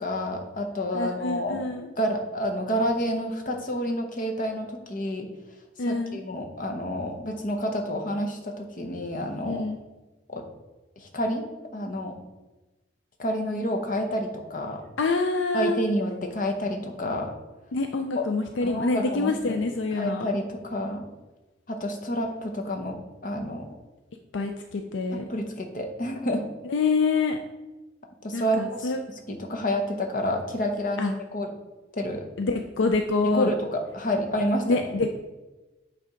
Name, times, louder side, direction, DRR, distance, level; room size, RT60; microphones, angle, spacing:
voice 1, 0.0-1.6 2.0-5.3 5.9-9.7 10.3-10.4 11.0-11.5 11.7-12.2 13.2-14.8 15.5-17.3 18.1-18.2 18.6-19.6 20.0-21.0 21.7-23.7 25.1-26.5 28.2-31.5 32.0-32.2 33.2-34.9, equal, 45° left, 3 dB, 0.9 m, -29 dB
voice 2, 0.9-1.9 5.8-6.2 9.4-9.8 15.0-15.9 17.7-20.3 24.3-25.2 26.6-27.4 28.3-29.0 31.0-31.1 32.4-33.5 34.7-35.1, left 3 dB, 70° left, 5 dB, 0.4 m, -26 dB
8.3 x 3.5 x 5.1 m, 1.1 s
head